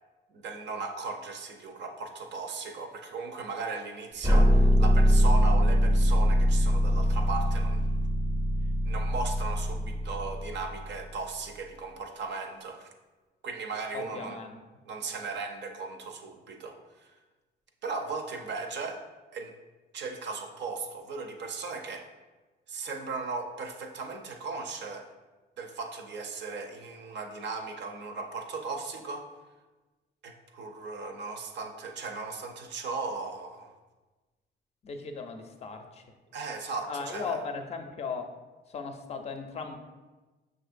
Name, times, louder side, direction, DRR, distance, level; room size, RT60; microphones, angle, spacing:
voice 1, 0.3-7.8 8.9-12.9 13.4-14.4 14.9-16.8 17.0-17.1 17.8-19.0 19.3-19.5 19.9-22.1 22.7-25.1 25.6-29.3 30.2-33.7 36.3-37.4, right 4 dB, 65° right, 4 dB, 0.6 m, -37 dB
sound 1, 4.2-11.2, equal, 15° right, 0.5 m, -23 dB
voice 2, 13.9-14.6 34.8-36.0 36.9-38.4 38.7-39.8, left 5 dB, 35° left, 5 dB, 0.5 m, -37 dB
6.0 x 2.6 x 2.5 m, 1.2 s
cardioid pair, 90°, 20 cm